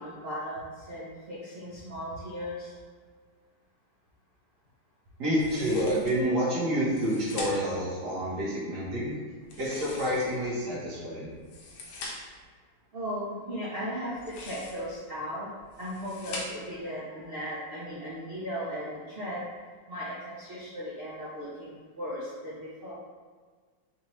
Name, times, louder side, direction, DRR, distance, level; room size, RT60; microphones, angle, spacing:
voice 1, 0.0-2.7 12.9-15.5 15.8-19.5 19.9-22.9, equal, 75° right, -9 dB, 0.5 m, -37 dB
voice 2, 5.2-9.2 9.6-11.3, equal, 60° right, -8 dB, 1.7 m, -28 dB
sound 1, 5.3-6.2 6.8-7.8 9.4-10.5 11.3-12.4 14.1-15.0 15.6-16.8, left 2 dB, 70° left, 1.3 m, -42 dB
4.3 x 2.9 x 3.1 m, 1.5 s
omnidirectional pair, 2.2 m